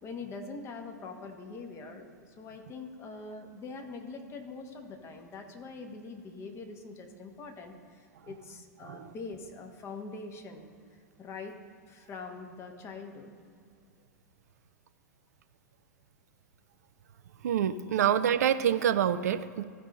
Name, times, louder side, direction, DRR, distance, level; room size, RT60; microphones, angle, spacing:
voice 1, 0.0-13.3 17.9-18.0, left 3 dB, 30° left, 4 dB, 1.4 m, -44 dB
voice 2, 17.4-19.6, right 9 dB, 65° right, 12 dB, 0.4 m, -26 dB
15.0 x 5.3 x 3.9 m, 2.2 s
figure-of-eight pair, 95°, 9 cm